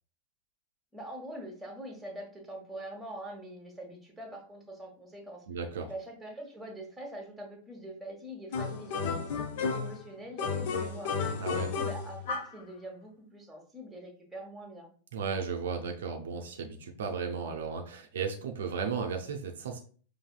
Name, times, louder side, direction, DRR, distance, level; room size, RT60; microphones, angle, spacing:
voice 1, 0.9-5.4 5.9-11.1 11.5-14.9, right 1 dB, 5° right, 1 dB, 1.1 m, -44 dB
voice 2, 5.5-5.9 11.4-11.7 15.1-19.8, right 5 dB, 60° right, 3 dB, 0.5 m, -35 dB
sound 1, 8.5-10.0 10.4-12.6, left 5 dB, 50° left, 0.6 m, -32 dB
5.4 x 2.7 x 2.3 m, 0.43 s
figure-of-eight pair, 90°, 0 cm